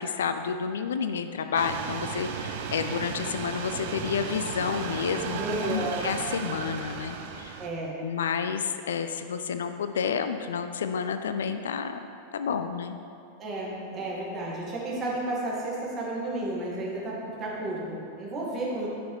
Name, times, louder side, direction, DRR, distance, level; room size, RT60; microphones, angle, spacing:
voice 1, 0.0-5.4 5.7-7.5 8.0-12.1 12.3-13.0, left 6 dB, 65° left, 9 dB, 0.3 m, -30 dB
sound 1, 1.5-7.7, right 6 dB, 50° right, 0.6 m, -35 dB
voice 2, 5.4-6.0 7.6-8.0 13.4-18.9, right 2 dB, 25° right, -5 dB, 2.0 m, -32 dB
10.0 x 5.9 x 3.4 m, 2.5 s
figure-of-eight pair, 90°, 0 cm